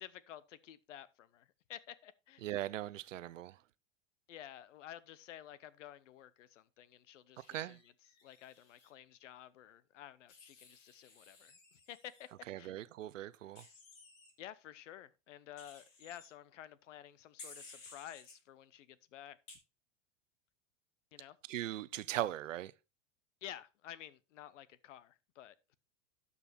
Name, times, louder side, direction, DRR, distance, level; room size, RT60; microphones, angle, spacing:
voice 1, 0.0-2.5 4.3-7.9 8.2-12.3 12.6-12.7 14.4-19.4 21.1-21.4 23.4-25.7, left 11 dB, 70° left, 0.9 m, -52 dB
voice 2, 2.4-3.6 7.4-7.8 12.5-13.6 21.5-22.7, right 13 dB, 75° right, 0.7 m, -39 dB
Wild animals, 7.4-8.9 10.3-12.3 13.6-14.3 15.6-16.3 17.4-18.3 19.5-19.6, left 4 dB, 50° left, 3.7 m, -56 dB
12.0 x 5.6 x 4.2 m
hypercardioid pair, 95°, 38 cm